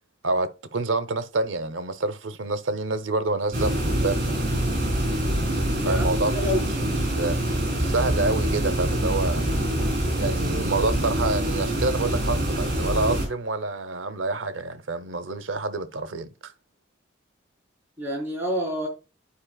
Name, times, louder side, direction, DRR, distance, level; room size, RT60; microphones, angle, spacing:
voice 1, 0.2-4.2 5.8-7.4 7.7-9.5 10.1-16.5, right 3 dB, 85° right, 0.8 m, -28 dB
sound 1, 3.5-13.3, right 1 dB, 45° right, 3.7 m, -25 dB
voice 2, 5.7-6.1 6.4-6.6 18.0-18.9, equal, 10° right, 4.1 m, -27 dB
11.5 x 4.7 x 2.3 m
head